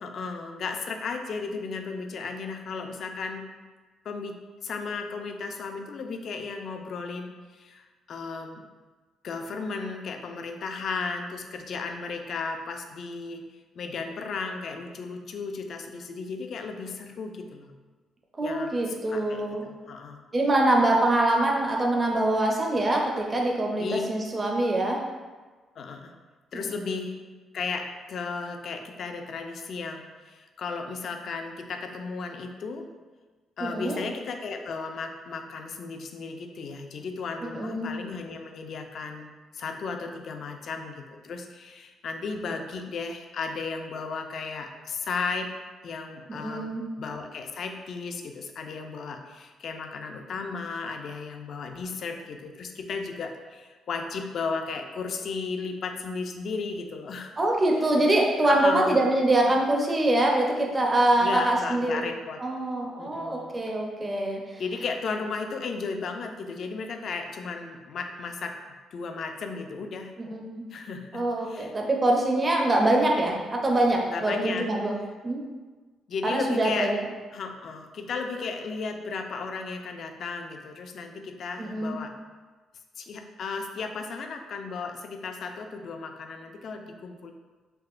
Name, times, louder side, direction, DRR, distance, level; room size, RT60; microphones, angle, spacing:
voice 1, 0.0-3.4 4.0-8.6 9.2-13.4 13.8-17.7 18.4-20.2 23.8-24.0 25.8-26.1 26.5-27.2 27.5-32.9 33.6-45.5 45.8-46.7 47.0-57.3 58.4-59.0 61.2-62.4 63.0-63.5 64.6-68.6 68.9-70.1 70.7-71.7 74.1-74.7 76.1-76.9 77.3-82.1 83.0-87.3, left 4 dB, 60° left, 5 dB, 0.3 m, -35 dB
voice 2, 18.4-19.6 20.3-25.0 26.5-26.9 33.6-34.0 37.4-37.9 46.3-46.8 57.4-62.0 62.4-64.6 70.2-70.6 71.1-75.0 75.2-75.4 76.2-77.0 81.6-82.0, right 1 dB, 25° right, 0 dB, 0.4 m, -24 dB
3.5 x 2.8 x 2.4 m, 1.3 s
cardioid pair, 90°, 0 cm